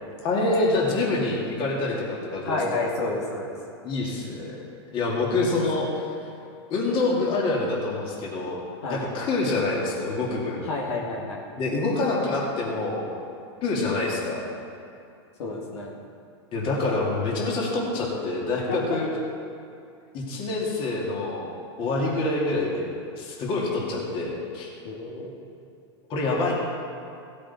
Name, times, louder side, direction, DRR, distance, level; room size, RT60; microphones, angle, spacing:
voice 1, 0.2-2.8 3.8-4.5 4.9-6.1 6.7-8.6 8.9-10.6 11.6-13.1 13.6-14.5 16.5-19.1 20.1-21.5 21.8-24.7 26.1-26.5, left 2 dB, 35° left, -3 dB, 2.6 m, -26 dB
voice 2, 2.4-3.5 5.4-5.5 8.8-9.1 10.6-11.4 15.4-15.9 18.7-19.0 24.8-25.3, left 2 dB, 75° left, -3 dB, 2.3 m, -30 dB
16.0 x 8.3 x 4.3 m, 2.5 s
hypercardioid pair, 130°, 15 cm